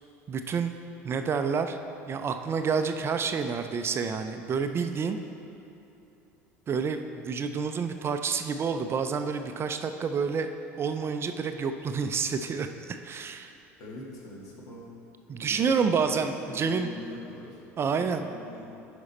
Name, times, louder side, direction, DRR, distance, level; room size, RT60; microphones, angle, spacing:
voice 1, 0.3-0.8 1.0-1.8 2.1-5.2 6.7-10.5 10.8-13.5 15.3-16.9 17.8-18.2, right 5 dB, 30° right, 7 dB, 0.5 m, -29 dB
voice 2, 13.8-14.9 15.3-16.2 16.5-17.6 17.9-18.7, left 1 dB, 50° left, -2 dB, 1.9 m, -43 dB
11.0 x 5.2 x 4.2 m, 2.9 s
hypercardioid pair, 75°, 8 cm